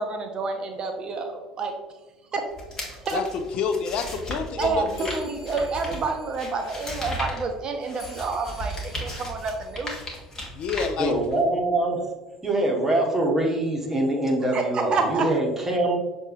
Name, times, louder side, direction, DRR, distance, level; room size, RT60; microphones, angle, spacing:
voice 1, 0.0-1.7 2.3-2.5 2.9-3.2 4.6-10.0 14.5-15.3, right 4 dB, 40° right, 5 dB, 0.5 m, -28 dB
sound 1, 2.5-11.6, equal, 25° left, 1.4 m, -36 dB
voice 2, 3.5-5.1 10.5-11.1, left 6 dB, 50° left, 7 dB, 0.4 m, -28 dB
sound 2, 4.9-10.8, left 1 dB, 85° left, 1.1 m, -51 dB
voice 3, 11.0-12.0 12.4-15.9, right 1 dB, 15° right, -1 dB, 1.2 m, -23 dB
6.5 x 2.6 x 3.1 m, 1.2 s
figure-of-eight pair, 65°, 2 cm